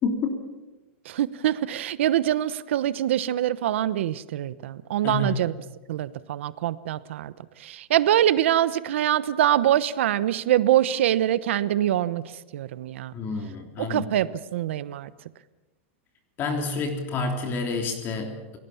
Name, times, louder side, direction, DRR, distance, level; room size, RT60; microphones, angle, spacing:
voice 1, 0.0-0.4 5.0-5.4 13.1-14.0 16.4-18.6, left 3 dB, 30° left, 4 dB, 3.4 m, -28 dB
voice 2, 1.0-5.5 5.9-13.1 13.8-15.1, right 12 dB, 75° right, 16 dB, 1.0 m, -24 dB
28.5 x 18.5 x 7.2 m, 1.1 s
supercardioid pair, 140°, 7 cm